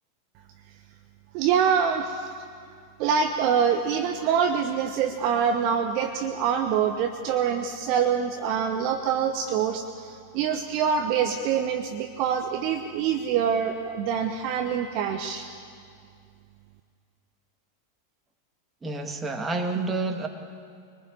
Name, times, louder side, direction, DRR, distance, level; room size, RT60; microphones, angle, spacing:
voice 1, 1.3-2.3 3.0-15.5, right 7 dB, 45° right, 6 dB, 1.1 m, -25 dB
voice 2, 18.8-20.3, right 3 dB, 15° right, 4 dB, 2.1 m, -29 dB
24.0 x 20.0 x 8.6 m, 2.3 s
figure-of-eight pair, 90°, 0 cm